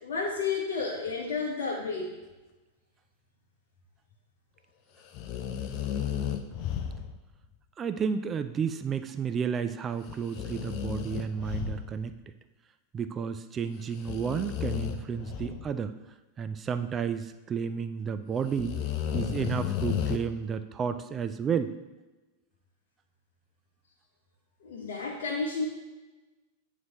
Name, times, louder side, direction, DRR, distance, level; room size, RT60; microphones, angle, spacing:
voice 1, 0.0-2.1 24.6-25.7, left 4 dB, 60° left, -3 dB, 0.9 m, -31 dB
sound 1, 5.1-7.3 10.1-12.2 13.9-15.8 18.5-20.2, left 9 dB, 40° left, 0.5 m, -33 dB
voice 2, 7.8-12.1 12.9-15.9 16.4-18.8 19.1-21.7, right 6 dB, 25° right, 11 dB, 0.4 m, -31 dB
9.2 x 4.1 x 3.0 m, 1.1 s
figure-of-eight pair, 90°, 0 cm